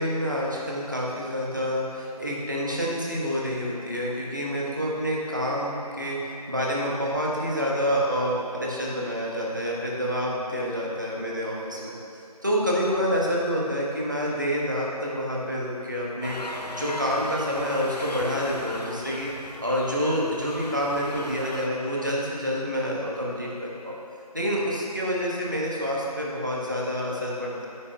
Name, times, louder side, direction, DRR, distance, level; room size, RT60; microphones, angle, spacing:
voice 1, 0.0-11.9 12.4-19.3 19.6-23.9 24.3-27.7, equal, 30° right, -4 dB, 1.3 m, -28 dB
sound 1, 16.2-21.7, left 1 dB, 90° left, 0.9 m, -38 dB
15.0 x 9.9 x 2.4 m, 2.8 s
figure-of-eight pair, 175°, 20 cm